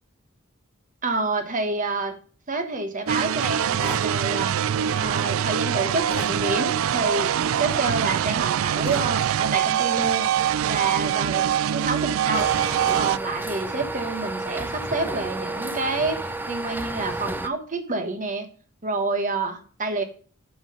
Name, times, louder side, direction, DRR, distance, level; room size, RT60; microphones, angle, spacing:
voice 1, 1.0-2.2 2.5-4.5 5.0-7.3 7.6-10.3 10.6-12.5 12.9-18.5 18.8-20.0, right 3 dB, 40° right, 7 dB, 1.3 m, -28 dB
sound 1, 3.1-13.2, right 9 dB, 75° right, 0.3 m, -24 dB
sound 2, 3.8-4.1 6.1-6.4 8.8-9.1, left 2 dB, 10° left, 2.5 m, -35 dB
sound 3, 12.3-17.5, right 2 dB, 10° right, 0.5 m, -31 dB
9.8 x 4.8 x 5.3 m, 0.42 s
head